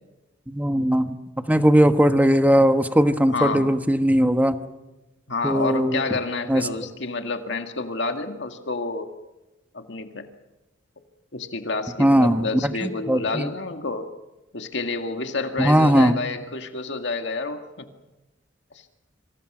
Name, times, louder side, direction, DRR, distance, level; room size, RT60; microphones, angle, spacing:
voice 1, 0.5-1.2 1.5-4.6 5.4-6.0 6.5-6.7 12.0-13.5 15.6-16.1, equal, 10° right, 8 dB, 1.3 m, -19 dB
voice 2, 3.3-3.7 5.3-9.1 9.7-10.3 11.3-14.1 14.5-17.9 18.7-18.8, left 3 dB, 65° left, 6 dB, 2.0 m, -29 dB
26.5 x 26.0 x 6.2 m, 1.0 s
head